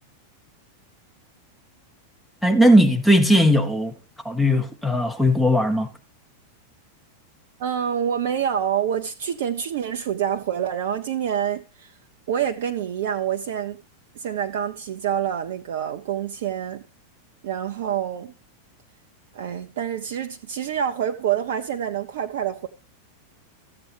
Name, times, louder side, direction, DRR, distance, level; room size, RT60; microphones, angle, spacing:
voice 1, 2.4-4.0 4.2-5.9, equal, 5° left, 1.2 m, -18 dB
voice 2, 7.6-11.9 12.3-13.8 14.2-16.8 17.4-18.3 19.3-22.7, right 9 dB, 55° right, 0.6 m, -27 dB
14.0 x 7.7 x 3.4 m
figure-of-eight pair, 90°, 0 cm